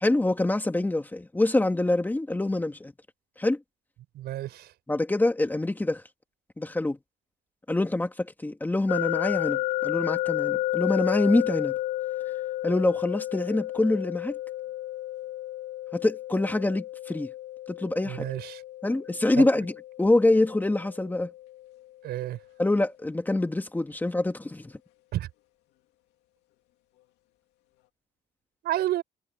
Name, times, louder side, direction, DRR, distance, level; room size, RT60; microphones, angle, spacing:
voice 1, 0.0-2.9 3.4-3.6 4.9-6.0 6.6-7.0 7.7-11.8 12.6-14.3 15.9-17.3 17.7-18.2 18.8-19.7 20.0-21.3 22.6-24.7, left 2 dB, 10° left, 1.9 m, -25 dB
voice 2, 4.1-4.7 18.0-18.6 19.4-19.5 22.0-22.4 25.1-25.3 28.6-29.0, right 14 dB, 70° right, 6.3 m, -30 dB
sound 1, 8.9-21.8, left 15 dB, 90° left, 2.4 m, -32 dB
cardioid pair, 110°, 17 cm